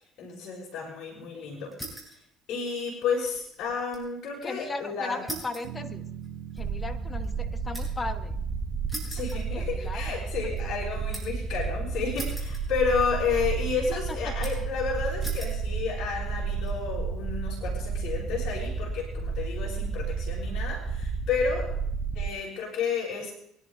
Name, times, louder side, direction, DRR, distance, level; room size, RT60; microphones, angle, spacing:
voice 1, 0.2-1.7 2.5-5.3 9.1-21.7 22.1-23.3, left 5 dB, 60° left, -6 dB, 5.7 m, -31 dB
sound 1, 1.7-2.2 2.6-4.1 4.4-4.5 5.3-8.1 8.9-10.0 10.4-11.4 12.1-13.0 13.3-13.9 14.4-14.8 15.2-15.6 16.3-16.7, right 1 dB, 5° right, 7.2 m, -41 dB
voice 2, 4.4-6.0 6.6-8.4 9.5-10.2 14.3-14.4, left 3 dB, 25° left, 10 dB, 1.4 m, -37 dB
Bass guitar, 5.6-10.0, right 9 dB, 75° right, 2.3 m, -44 dB
sound 2, 6.6-22.3, right 5 dB, 30° right, 1.7 m, -32 dB
24.0 x 11.5 x 3.5 m, 0.72 s
hypercardioid pair, 60°, 0 cm